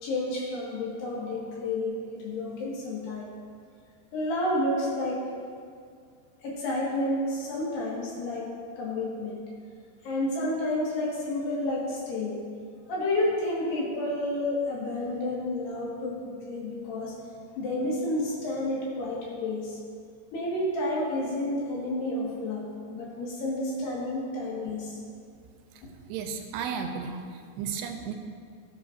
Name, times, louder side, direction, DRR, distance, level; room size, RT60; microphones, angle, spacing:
voice 1, 0.0-3.3 4.1-5.2 6.4-9.4 10.0-12.4 12.9-17.1 17.6-19.8 20.3-22.6 22.9-25.0, left 1 dB, 70° left, -5 dB, 3.7 m, -30 dB
voice 2, 26.1-28.1, right 6 dB, 80° right, 5 dB, 2.5 m, -34 dB
18.5 x 7.7 x 2.6 m, 2.2 s
omnidirectional pair, 5.0 m